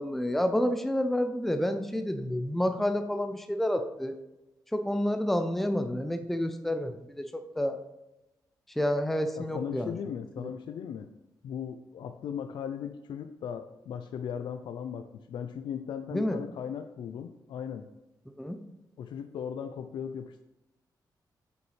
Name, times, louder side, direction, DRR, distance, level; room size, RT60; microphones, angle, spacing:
voice 1, 0.0-4.2 4.7-7.8 8.8-9.9 10.4-10.5 16.1-16.4 18.4-18.6, left 1 dB, 5° left, 7 dB, 0.5 m, -29 dB
voice 2, 9.4-11.1 11.4-17.9 19.0-20.4, left 8 dB, 85° left, 8 dB, 0.5 m, -37 dB
8.6 x 7.0 x 3.3 m, 0.95 s
wide cardioid pair, 135°, 8 cm